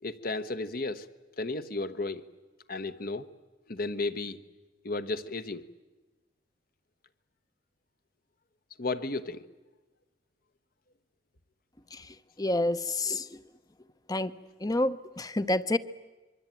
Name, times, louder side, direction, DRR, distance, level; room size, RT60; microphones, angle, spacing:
voice 1, 0.0-1.1 1.4-2.2 2.7-3.3 3.7-4.4 4.8-5.6 8.8-9.5, left 3 dB, 50° left, 11 dB, 1.2 m, -33 dB
voice 2, 12.4-13.3 14.1-14.3 14.6-15.8, left 2 dB, 20° left, 13 dB, 0.8 m, -28 dB
26.0 x 23.0 x 9.1 m, 1.2 s
head